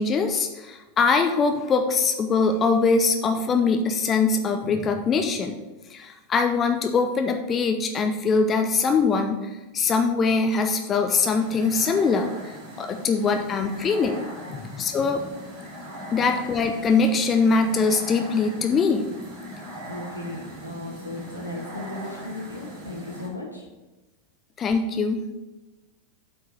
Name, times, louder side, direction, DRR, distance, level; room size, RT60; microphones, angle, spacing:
voice 1, 0.0-5.6 5.9-12.3 12.8-14.2 14.5-15.2 16.1-19.0 24.6-25.2, left 4 dB, 25° left, 6 dB, 0.6 m, -22 dB
sound 1, 11.1-23.3, equal, 35° right, 2.9 m, -40 dB
voice 2, 19.9-23.7, left 1 dB, 85° left, -2 dB, 1.9 m, -36 dB
8.1 x 4.6 x 6.2 m, 1.1 s
figure-of-eight pair, 90°, 0 cm